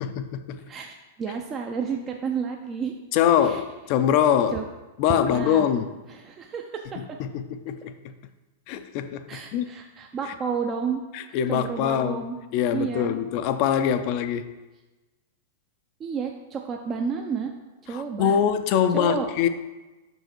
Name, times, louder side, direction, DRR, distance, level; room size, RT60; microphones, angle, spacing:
voice 1, 0.0-0.6 3.1-4.6 5.0-5.9 7.2-7.9 8.7-9.3 9.5-9.7 11.1-12.2 12.5-14.5 17.9-19.5, left 9 dB, 50° left, 11 dB, 0.5 m, -23 dB
voice 2, 0.7-2.9 3.4-3.6 4.5-4.7 5.1-5.7 6.1-7.0 9.3-11.0 11.3-12.4 12.7-13.1 16.0-17.5 17.8-18.4 18.9-19.3, right 6 dB, 25° right, 2 dB, 0.6 m, -31 dB
5.6 x 5.4 x 4.5 m, 1.1 s
hypercardioid pair, 100°, 0 cm